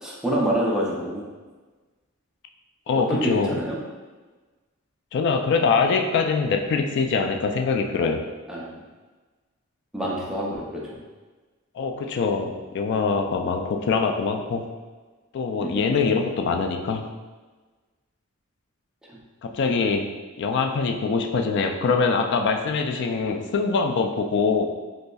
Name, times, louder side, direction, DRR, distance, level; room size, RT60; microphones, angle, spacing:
voice 1, 0.0-1.3 2.9-3.8 8.5-8.8 9.9-11.0 15.6-16.0, right 1 dB, 5° right, -5 dB, 0.5 m, -27 dB
voice 2, 2.9-3.6 5.1-8.2 11.8-14.7 15.3-17.1 19.4-20.1 20.4-24.7, left 4 dB, 55° left, 4 dB, 0.3 m, -23 dB
5.2 x 2.0 x 2.3 m, 1.3 s
head